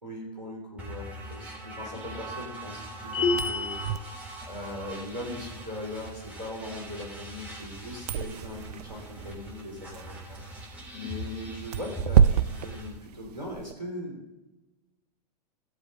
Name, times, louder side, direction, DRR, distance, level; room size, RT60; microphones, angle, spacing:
voice 1, 0.0-10.4 10.7-14.4, left 1 dB, 90° right, 1 dB, 3.5 m, -40 dB
sound 1, 0.8-12.9, right 1 dB, 5° right, 3.6 m, -42 dB
sound 2, 3.1-4.0, left 4 dB, 30° left, 0.8 m, -27 dB
sound 3, 3.2-13.7, right 8 dB, 70° right, 0.5 m, -30 dB
16.5 x 7.8 x 3.8 m, 1.1 s
hypercardioid pair, 100°, 21 cm